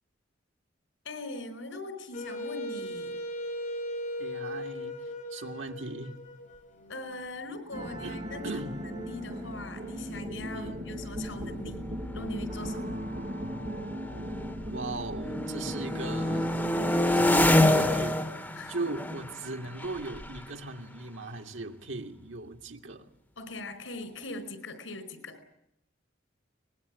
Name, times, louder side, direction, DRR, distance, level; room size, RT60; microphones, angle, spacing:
voice 1, 1.0-3.1 6.9-8.4 8.9-11.9 12.1-13.0 18.5-18.8 23.4-25.4, left 2 dB, 90° left, 4.7 m, -41 dB
Wind instrument woodwind instrument, 2.1-7.1, left 1 dB, 45° left, 3.4 m, -38 dB
voice 2, 4.2-5.0 5.3-6.2 8.0-8.8 10.5-10.9 14.6-16.6 17.0-18.3 18.7-23.1, right 2 dB, 90° right, 2.0 m, -38 dB
sound 1, 7.7-18.1, equal, 40° right, 7.6 m, -37 dB
sound 2, 9.4-9.5 9.7-10.1 10.8-14.7 15.1-21.7, left 1 dB, 10° left, 2.2 m, -29 dB
24.0 x 20.5 x 8.4 m
head